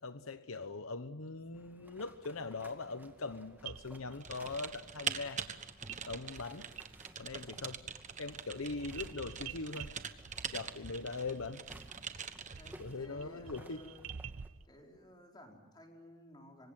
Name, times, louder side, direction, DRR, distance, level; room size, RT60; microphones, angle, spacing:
voice 1, 0.0-5.4 6.1-6.7 7.2-7.8 8.2-9.9 10.5-11.6 12.8-13.8, left 3 dB, 75° left, 1.0 m, -41 dB
sound 1, 1.5-14.5, right 1 dB, 10° right, 2.1 m, -59 dB
Bottles clanking, 3.6-4.6 5.9-6.1 6.3-7.4 7.7-14.7, right 7 dB, 80° right, 0.8 m, -50 dB
Typing, 4.2-12.8, right 7 dB, 35° right, 1.3 m, -43 dB
voice 2, 12.6-14.1 14.6-16.7, left 1 dB, 20° left, 4.8 m, -55 dB
26.5 x 25.0 x 7.6 m
head